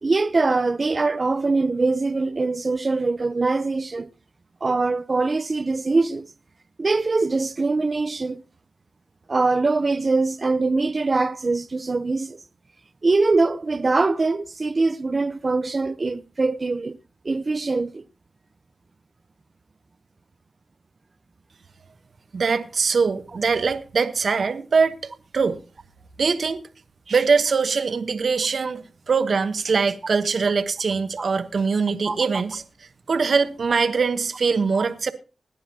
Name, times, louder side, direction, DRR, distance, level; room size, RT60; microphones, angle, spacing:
voice 1, 0.0-4.1 4.6-6.3 6.8-8.4 9.3-12.4 13.0-17.0 17.2-18.0 32.1-32.3 34.7-34.8, right 3 dB, 50° right, 0.8 m, -23 dB
voice 2, 22.3-25.6 26.2-26.6 27.1-32.6 33.1-35.1, right 5 dB, 70° right, 1.1 m, -22 dB
20.5 x 9.8 x 2.9 m
cardioid pair, 40°, 0 cm